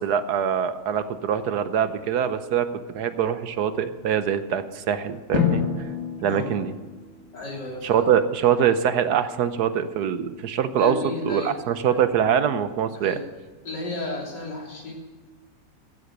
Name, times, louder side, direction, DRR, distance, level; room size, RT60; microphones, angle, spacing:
voice 1, 0.0-2.7 2.9-5.6 6.2-6.7 7.8-11.0 11.2-13.2, right 8 dB, 70° right, 11 dB, 1.3 m, -23 dB
Drum, 5.3-7.8, left 7 dB, 40° left, 1.9 m, -28 dB
voice 2, 7.3-8.1 10.8-11.5 11.9-12.0 13.0-13.2 13.6-14.9, left 2 dB, 85° left, -2 dB, 3.9 m, -33 dB
16.0 x 8.0 x 6.7 m, 1.4 s
omnidirectional pair, 1.8 m